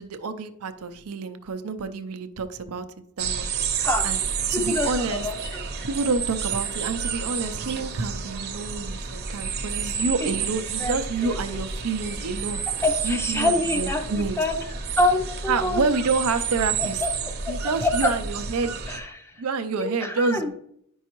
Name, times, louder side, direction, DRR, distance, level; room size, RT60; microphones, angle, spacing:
voice 1, 0.0-2.8 3.2-3.5 4.0-4.2 4.5-5.3 5.8-12.6 13.0-14.4 15.5-17.0 17.5-18.7 19.4-20.5, right 4 dB, 75° right, 9 dB, 0.6 m, -28 dB
sound 1, 3.2-19.0, right 6 dB, 50° right, 0.9 m, -30 dB
voice 2, 4.5-5.6 10.8-11.6 12.8-14.6 15.0-15.8 16.8-17.1 17.4-17.5 17.8-18.1 18.9-19.4 19.8-20.5, left 2 dB, 10° left, 5 dB, 0.6 m, -26 dB
9.2 x 5.4 x 3.0 m, 0.73 s
head